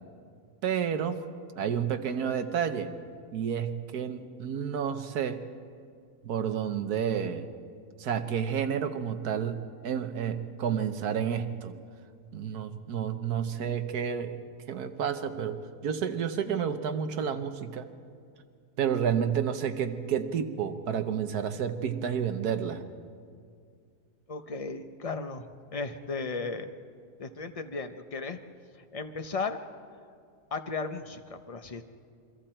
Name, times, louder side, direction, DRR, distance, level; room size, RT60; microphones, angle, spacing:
voice 1, 0.6-1.2 1.6-2.9 3.3-5.4 6.2-7.5 8.0-11.8 12.3-14.4 14.7-15.6 15.8-17.9 18.8-22.8, right 8 dB, 65° right, 9 dB, 1.4 m, -30 dB
voice 2, 24.3-25.5 25.7-26.7 27.2-28.4 28.9-29.6 30.5-31.8, left 4 dB, 50° left, 8 dB, 0.4 m, -35 dB
28.0 x 23.5 x 4.4 m, 2.3 s
omnidirectional pair, 1.9 m